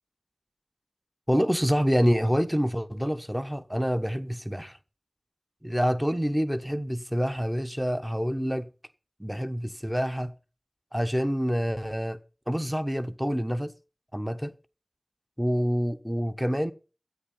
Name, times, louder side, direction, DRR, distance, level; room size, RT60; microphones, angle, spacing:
voice 1, 1.3-4.8 5.6-8.7 9.2-10.3 10.9-12.2 12.5-13.7 14.1-14.5 15.4-16.7, equal, 5° right, 1.2 m, -27 dB
13.0 x 9.3 x 5.6 m
wide cardioid pair, 40°, 0 cm